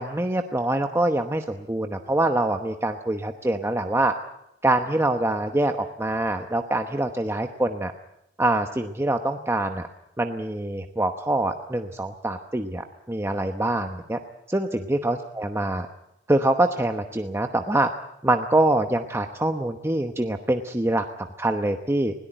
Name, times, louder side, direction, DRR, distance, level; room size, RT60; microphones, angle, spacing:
voice 1, 0.0-4.1 4.6-7.9 8.4-9.9 10.2-14.2 14.5-15.9 16.3-17.9 18.2-22.1, right 1 dB, 15° right, 5 dB, 1.0 m, -24 dB
21.0 x 17.5 x 9.0 m, 0.83 s
head